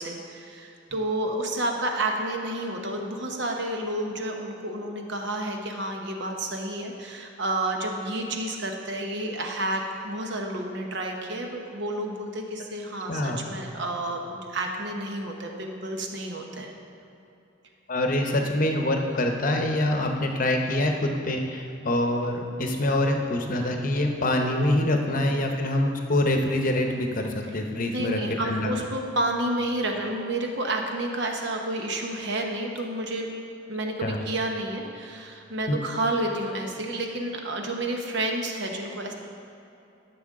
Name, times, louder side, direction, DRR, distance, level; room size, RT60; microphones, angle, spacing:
voice 1, 0.0-16.7 24.8-25.2 27.9-33.3 33.7-39.1, right 1 dB, 55° right, 2 dB, 1.0 m, -30 dB
voice 2, 13.1-13.5 17.9-28.7 34.0-34.2, left 1 dB, 40° left, 3 dB, 0.9 m, -25 dB
13.5 x 7.0 x 3.7 m, 2.8 s
head